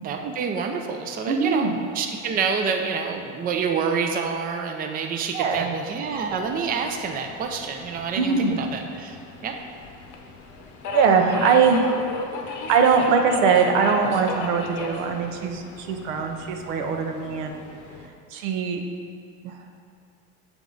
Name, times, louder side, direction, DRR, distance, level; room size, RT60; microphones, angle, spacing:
voice 1, 0.0-1.7 1.9-9.2 9.4-9.6, right 6 dB, 25° right, 4 dB, 0.4 m, -27 dB
voice 2, 1.3-1.9 5.3-5.7 8.2-8.6 10.9-11.9 12.4-17.6 18.3-18.8 19.4-19.5, right 5 dB, 85° right, 4 dB, 0.7 m, -21 dB
Subway metro underground, 6.1-18.1, left 3 dB, 50° left, 0.8 m, -36 dB
7.0 x 3.5 x 3.8 m, 2.3 s
supercardioid pair, 100°, 38 cm